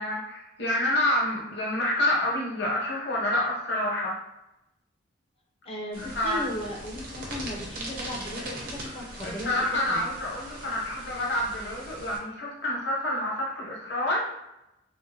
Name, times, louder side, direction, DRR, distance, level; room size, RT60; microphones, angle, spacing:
voice 1, 0.0-4.2 6.0-6.4 8.9-14.2, left 1 dB, 60° left, -4 dB, 0.9 m, -28 dB
voice 2, 5.7-10.0, left 1 dB, 30° left, -1 dB, 0.5 m, -36 dB
sound 1, 5.9-12.2, right 1 dB, 45° right, 0.7 m, -40 dB
3.6 x 2.0 x 2.8 m, 0.89 s
head